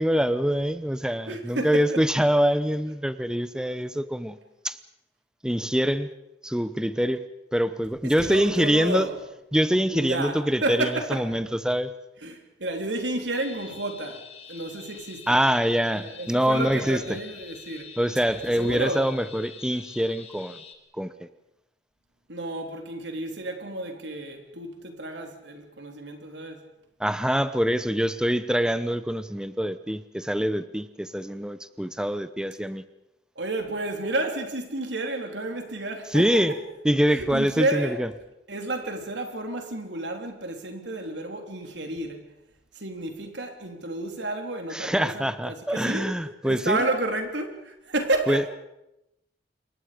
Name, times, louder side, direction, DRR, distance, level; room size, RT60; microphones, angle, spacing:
voice 1, 0.0-4.4 4.6-4.8 5.4-6.1 6.4-7.2 7.5-9.1 9.5-11.9 15.3-17.0 18.0-20.6 20.9-21.3 27.0-32.8 36.1-36.5 36.8-38.1 44.7-46.8 48.3-48.4, equal, 5° right, 0.8 m, -24 dB
voice 2, 1.3-2.0 8.0-9.2 9.9-11.4 12.2-15.4 15.9-17.9 18.6-19.1 22.3-26.6 33.4-36.6 37.1-38.0 38.5-42.3 42.7-46.2 46.4-48.4, right 2 dB, 75° right, 3.5 m, -31 dB
sound 1, 13.3-20.7, left 7 dB, 35° left, 2.3 m, -46 dB
27.5 x 23.0 x 5.2 m
head